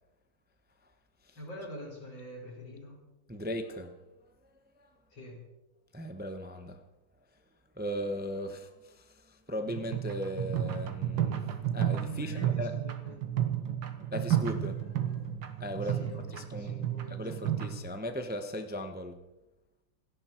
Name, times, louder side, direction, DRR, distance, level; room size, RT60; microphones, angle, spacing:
voice 1, 1.3-3.0 5.1-5.4 12.1-13.2 15.8-17.4, equal, 80° left, -2 dB, 6.5 m, -45 dB
voice 2, 3.3-4.0 5.9-6.8 7.8-8.9 9.5-12.7 14.1-14.9 15.5-19.2, equal, 5° right, 7 dB, 0.8 m, -37 dB
sound 1, 9.7-17.8, right 10 dB, 85° right, 2.1 m, -32 dB
28.0 x 11.0 x 4.5 m, 1.0 s
omnidirectional pair, 2.0 m